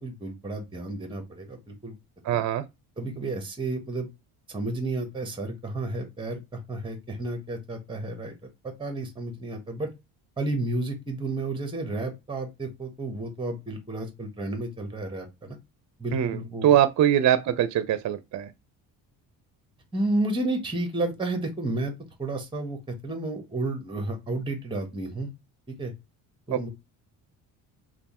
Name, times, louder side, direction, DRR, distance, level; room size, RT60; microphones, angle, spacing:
voice 1, 0.0-1.9 2.3-2.4 3.0-4.1 4.5-8.3 8.6-9.9 10.4-15.6 16.0-16.7 19.9-21.9 22.2-25.3 25.7-25.9 26.5-26.7, right 2 dB, 10° right, 1.1 m, -31 dB
voice 2, 2.2-2.6 16.1-18.5 26.5-26.6, right 11 dB, 45° right, 0.6 m, -23 dB
3.3 x 2.4 x 4.2 m
cardioid pair, 100°, 40 cm